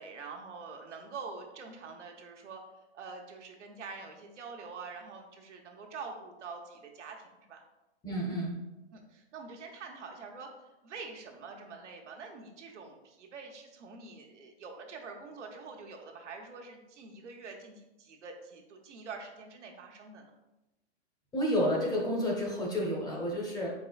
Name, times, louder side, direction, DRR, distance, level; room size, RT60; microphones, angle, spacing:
voice 1, 0.0-2.6 2.9-7.6 8.9-10.5 10.8-20.3, right 4 dB, 85° right, 2 dB, 0.9 m, -45 dB
voice 2, 8.0-8.6 21.3-23.7, equal, 10° left, -2 dB, 0.8 m, -30 dB
4.6 x 4.2 x 2.3 m, 0.97 s
hypercardioid pair, 135°, 35 cm